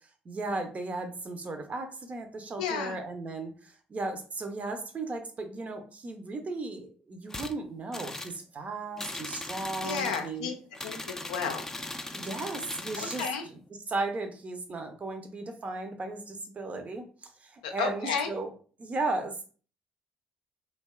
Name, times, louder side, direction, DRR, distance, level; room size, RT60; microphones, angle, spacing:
voice 1, 0.2-10.5 12.1-13.6 13.9-18.5 18.8-19.4, right 3 dB, 35° right, 5 dB, 0.6 m, -36 dB
voice 2, 2.6-3.0 9.8-10.5 10.8-11.6 13.0-13.4 17.6-18.3, left 6 dB, 85° left, 4 dB, 0.4 m, -32 dB
sound 1, 7.3-7.5 7.9-8.4 9.0-10.3 10.7-13.4, left 2 dB, 15° left, 0.3 m, -39 dB
2.6 x 2.2 x 2.2 m, 0.40 s
hypercardioid pair, 55°, 4 cm